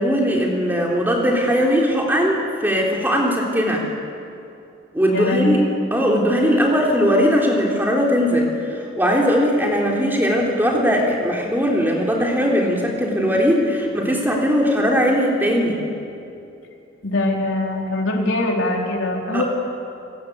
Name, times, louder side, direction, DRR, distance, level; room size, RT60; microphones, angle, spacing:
voice 1, 0.0-3.8 4.9-5.6 5.9-15.8 19.3-19.4, equal, 10° right, -1 dB, 3.5 m, -19 dB
voice 2, 5.1-5.5 6.1-6.2 17.0-19.4, left 2 dB, 85° left, 0 dB, 3.8 m, -22 dB
28.5 x 17.5 x 8.2 m, 2.7 s
head